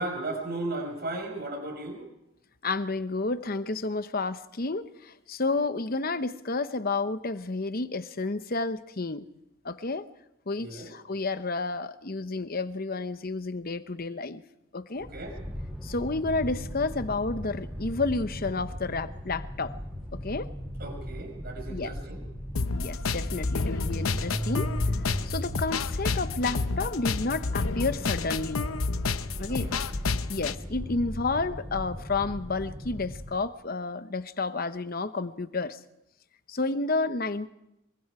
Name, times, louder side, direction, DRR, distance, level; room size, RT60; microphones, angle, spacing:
voice 1, 0.0-2.1 10.6-10.9 15.0-15.4 20.8-22.2 29.5-29.8, right 2 dB, 45° right, 5.3 m, -35 dB
voice 2, 2.6-9.3 9.6-10.1 10.5-14.4 14.7-15.1 15.8-19.8 20.1-20.5 21.7-21.9 22.7-24.7 25.3-28.6 29.4-29.7 30.3-35.8 36.5-37.5, left 3 dB, 45° left, 0.9 m, -31 dB
sound 1, 15.0-33.3, equal, ahead, 6.2 m, -37 dB
sound 2, 22.6-30.6, left 4 dB, 80° left, 0.8 m, -30 dB
24.5 x 23.5 x 4.9 m
head